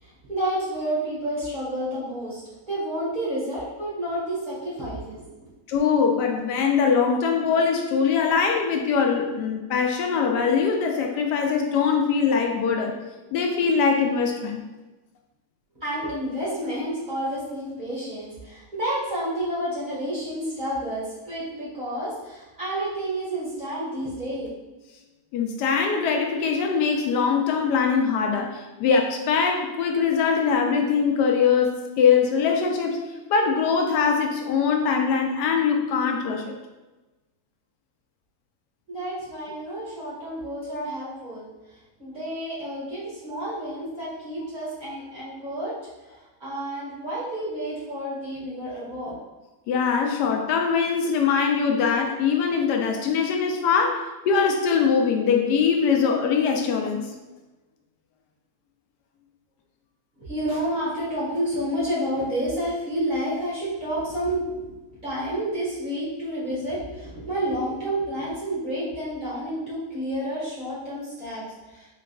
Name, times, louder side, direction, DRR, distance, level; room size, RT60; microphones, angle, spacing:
voice 1, 0.0-2.4 2.7-5.2 15.8-24.5 38.9-41.5 42.0-45.7 46.1-49.1 60.2-64.4 65.0-71.9, right 1 dB, 30° right, -9 dB, 1.6 m, -30 dB
voice 2, 5.7-12.9 13.3-14.6 25.3-33.0 33.3-36.5 49.7-57.1, left 6 dB, 85° left, 3 dB, 1.2 m, -22 dB
3.9 x 3.6 x 2.3 m, 1.1 s
omnidirectional pair, 1.7 m